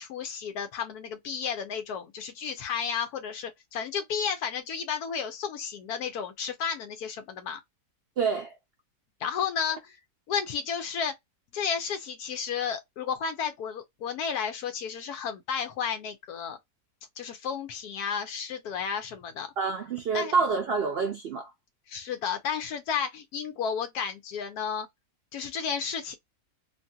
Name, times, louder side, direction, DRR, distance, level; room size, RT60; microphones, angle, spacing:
voice 1, 0.0-7.6 9.2-10.0 10.3-11.1 11.5-16.6 17.2-19.5 20.1-20.3 21.9-24.9 25.3-26.2, left 7 dB, 90° left, 1.2 m, -32 dB
voice 2, 8.2-8.6 19.6-21.5, right 5 dB, 70° right, 0.6 m, -27 dB
2.9 x 2.7 x 2.3 m
omnidirectional pair, 1.6 m